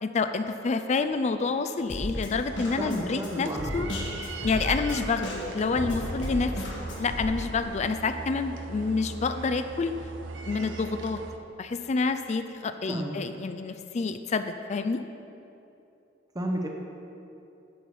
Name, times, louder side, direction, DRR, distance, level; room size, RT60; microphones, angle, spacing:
voice 1, 0.0-3.9 4.4-9.9 10.5-11.2 11.6-15.0, left 4 dB, 40° left, 9 dB, 0.4 m, -28 dB
Drum kit, 1.9-7.2, left 1 dB, 75° left, 1.6 m, -34 dB
sound 1, 2.4-11.4, right 3 dB, 80° right, 0.6 m, -40 dB
voice 2, 2.8-3.8 12.9-13.2 16.3-16.7, right 1 dB, 20° right, 1 dB, 0.8 m, -31 dB
10.5 x 5.5 x 4.7 m, 2.7 s
head